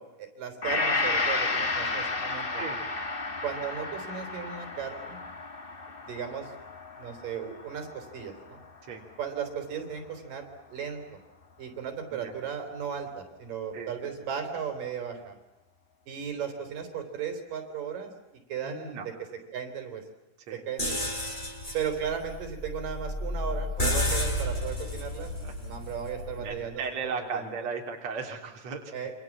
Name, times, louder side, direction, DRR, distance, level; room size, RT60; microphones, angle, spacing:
voice 1, 0.0-2.6 3.4-5.2 6.0-6.5 7.0-8.6 9.2-11.2 11.6-15.4 16.1-18.1 18.5-19.1 19.5-20.0 20.5-21.1 21.7-27.5 28.9-29.1, right 7 dB, 75° right, 6 dB, 5.4 m, -36 dB
Gong, 0.6-8.9 9.4-9.5, left 3 dB, 35° left, 0.9 m, -32 dB
voice 2, 13.7-14.1 18.6-19.1 20.5-20.6 24.1-24.2 25.4-25.5 26.4-28.9, right 5 dB, 50° right, 1 dB, 4.3 m, -36 dB
sound 1, 20.8-26.6, left 1 dB, 10° left, 7.6 m, -32 dB
28.0 x 26.5 x 7.4 m, 0.95 s
omnidirectional pair, 3.9 m